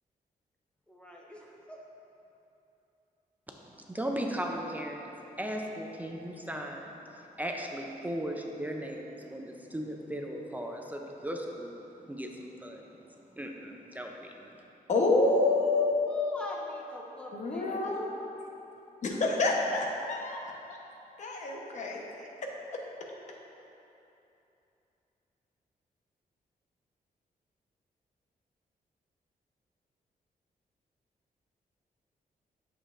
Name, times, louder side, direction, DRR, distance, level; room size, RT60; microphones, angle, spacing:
voice 1, 0.9-1.8 16.1-17.9, equal, 5° left, -3 dB, 0.8 m, -43 dB
voice 2, 3.5-5.1 5.4-7.0 7.4-11.8 12.1-12.9 13.4-14.5, equal, 10° right, 1 dB, 0.4 m, -37 dB
voice 3, 14.9-15.9 17.3-18.1 19.0-20.4 21.2-22.3, left 2 dB, 50° left, -1 dB, 0.8 m, -27 dB
8.5 x 7.1 x 2.5 m, 2.9 s
wide cardioid pair, 160°, 15 cm